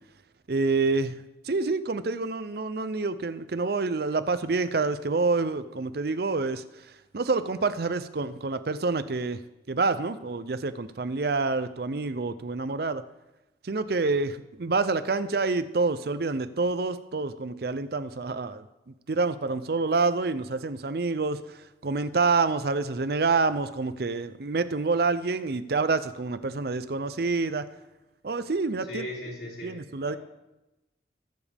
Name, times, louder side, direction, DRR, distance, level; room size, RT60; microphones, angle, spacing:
voice 1, 0.5-6.6 7.1-9.4 9.7-13.0 13.6-27.7 28.2-29.0 29.6-30.2, right 3 dB, 55° right, 13 dB, 0.6 m, -27 dB
voice 2, 28.9-30.2, left 1 dB, 65° left, -4 dB, 3.8 m, -38 dB
22.0 x 7.3 x 3.5 m, 0.98 s
head